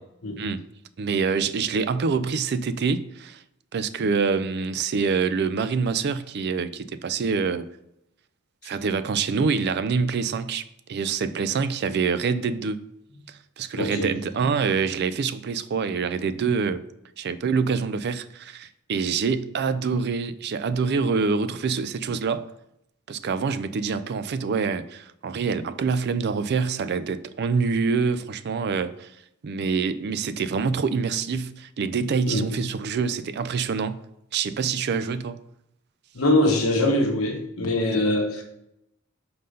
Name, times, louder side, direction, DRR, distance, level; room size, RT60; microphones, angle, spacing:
voice 1, 1.0-3.4 3.7-7.7 8.6-12.8 13.3-16.8 17.2-22.5 23.1-29.1 29.4-34.0 34.3-35.4, right 5 dB, 50° right, 0.4 m, -26 dB
voice 2, 13.8-14.1 32.3-32.5 36.1-38.4, left 1 dB, 75° left, 1.2 m, -23 dB
5.6 x 3.9 x 5.2 m
head